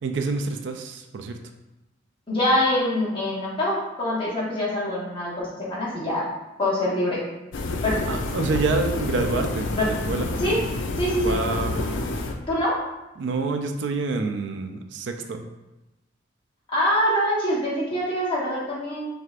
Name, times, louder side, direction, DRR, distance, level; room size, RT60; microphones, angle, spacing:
voice 1, 0.0-1.4 8.1-10.3 11.2-11.8 13.2-15.5, right 3 dB, 70° right, 6 dB, 0.4 m, -27 dB
voice 2, 2.3-6.3 6.6-7.2 7.8-7.9 10.4-10.6 11.0-11.4 12.5-12.8 16.7-19.1, left 1 dB, 25° left, -6 dB, 1.1 m, -24 dB
sound 1, 7.5-12.5, left 2 dB, 75° left, 0.4 m, -28 dB
4.8 x 3.3 x 2.4 m, 1.0 s
head